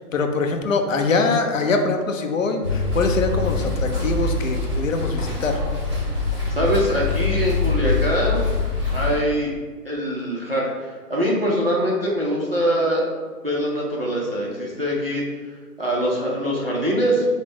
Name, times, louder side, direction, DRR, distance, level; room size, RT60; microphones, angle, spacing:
voice 1, 0.1-5.6, left 3 dB, 55° left, 5 dB, 0.5 m, -23 dB
sound 1, 2.6-9.2, left 3 dB, 15° right, 0.9 m, -24 dB
voice 2, 6.5-8.5 8.9-9.5 9.8-13.1 13.4-15.2 15.8-17.3, equal, 40° right, -5 dB, 0.4 m, -23 dB
5.2 x 2.1 x 3.0 m, 1.5 s
hypercardioid pair, 165°, 47 cm